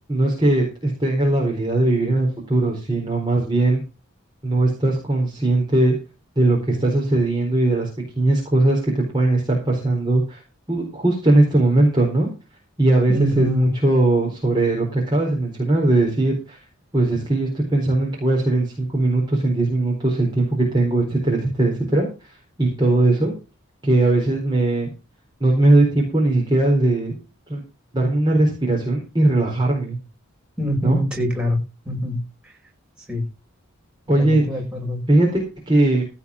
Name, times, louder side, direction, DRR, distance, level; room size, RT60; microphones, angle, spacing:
voice 1, 0.1-3.8 4.4-5.9 6.4-7.9 8.2-10.4 10.7-12.3 12.8-16.6 16.9-22.3 22.6-23.3 23.8-24.9 25.4-27.1 27.5-27.6 27.9-30.0 30.8-31.0 34.1-34.6 35.1-36.0, right 2 dB, 20° right, -2 dB, 4.2 m, -19 dB
voice 2, 13.1-13.7 30.6-31.6 31.9-32.2 33.1-33.2 34.2-35.0, equal, 5° right, -1 dB, 6.1 m, -24 dB
16.5 x 5.9 x 6.3 m, 0.30 s
head